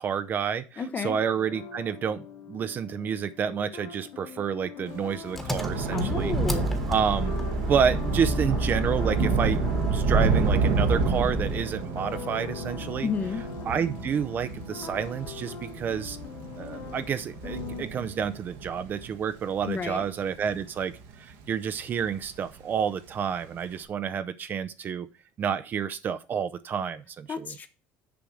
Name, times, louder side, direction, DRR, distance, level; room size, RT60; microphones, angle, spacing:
voice 1, 0.0-6.3 6.9-7.3 7.6-13.1 13.7-16.2 16.6-25.1 25.4-27.5, right 7 dB, 35° right, 0.6 m, -29 dB
voice 2, 0.8-1.2 5.9-6.7 13.0-13.4 19.7-20.0 27.3-27.7, left 5 dB, 30° left, 0.8 m, -31 dB
sound 1, 1.2-17.9, left 7 dB, 60° left, 1.9 m, -42 dB
Thunder / Rain, 5.0-21.6 21.9-22.3 22.6-22.8, right 4 dB, 80° right, 1.5 m, -30 dB
Engine, 5.3-11.6, right 1 dB, 5° left, 1.3 m, -30 dB
6.9 x 5.1 x 6.2 m
cardioid pair, 130°, 5 cm